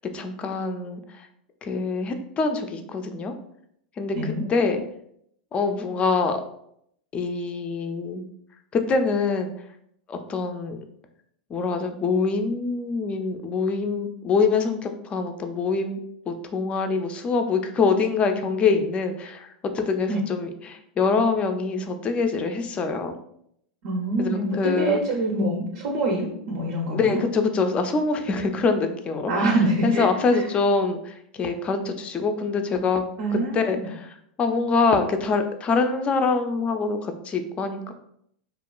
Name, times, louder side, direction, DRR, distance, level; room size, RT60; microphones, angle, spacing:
voice 1, 0.1-1.3 1.6-3.3 4.0-4.8 5.5-6.4 7.1-8.2 8.7-9.5 10.1-10.8 11.5-16.0 16.3-23.1 24.2-25.0 26.9-29.5 29.8-33.0 33.3-37.9, left 4 dB, 25° left, 6 dB, 0.4 m, -25 dB
voice 2, 4.1-4.5 20.1-20.2 23.8-27.2 29.3-30.4 33.2-33.9, right 1 dB, 65° right, 0 dB, 0.5 m, -25 dB
2.9 x 2.3 x 2.2 m, 0.71 s
hypercardioid pair, 110°, 5 cm